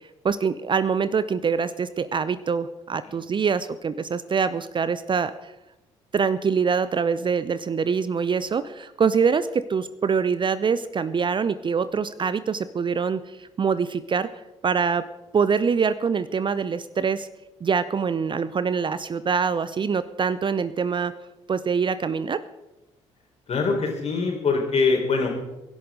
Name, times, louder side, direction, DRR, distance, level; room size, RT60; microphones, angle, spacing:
voice 1, 0.2-5.5 6.1-14.3 14.6-15.1 15.3-17.3 17.6-21.1 21.5-22.4, right 6 dB, 30° right, 15 dB, 0.6 m, -24 dB
voice 2, 23.5-25.3, left 4 dB, 40° left, 2 dB, 4.3 m, -23 dB
24.0 x 11.0 x 3.9 m, 0.99 s
figure-of-eight pair, 45°, 15 cm